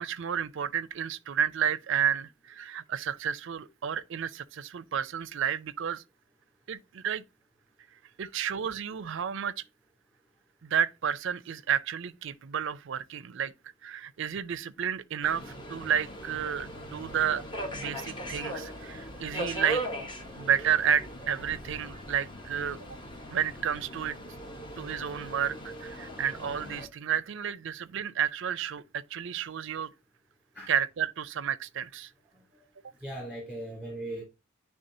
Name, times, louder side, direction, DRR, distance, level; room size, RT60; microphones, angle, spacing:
voice 1, 0.0-6.0 6.7-7.2 8.2-9.6 10.6-13.5 13.8-17.4 17.7-19.8 20.4-22.9 23.3-24.2 24.8-29.9 30.7-32.1, right 8 dB, 60° right, 0.4 m, -31 dB
Subway metro underground, 15.2-26.9, equal, 25° left, 1.0 m, -39 dB
voice 2, 33.0-34.2, right 1 dB, 5° left, 2.7 m, -38 dB
10.0 x 3.5 x 2.6 m
head